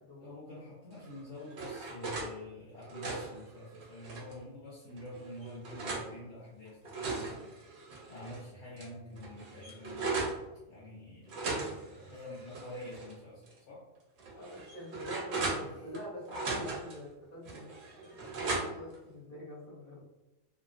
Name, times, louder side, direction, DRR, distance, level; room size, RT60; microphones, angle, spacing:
voice 1, 0.2-7.5 8.1-10.3 10.7-11.4 11.8-13.8 15.6-15.8, left 1 dB, 65° left, -7 dB, 0.9 m, -47 dB
sound 1, 1.0-2.3 2.7-4.4 5.0-6.1 6.7-8.4 8.8-8.9 9.2-10.4 11.3-13.1 13.5-13.6 14.2-16.0 16.3-17.0 17.5-19.0, right 3 dB, 60° right, 0.8 m, -38 dB
voice 2, 14.3-20.0, left 1 dB, 15° left, -12 dB, 0.9 m, -46 dB
2.4 x 2.2 x 2.4 m, 1.0 s
omnidirectional pair, 1.5 m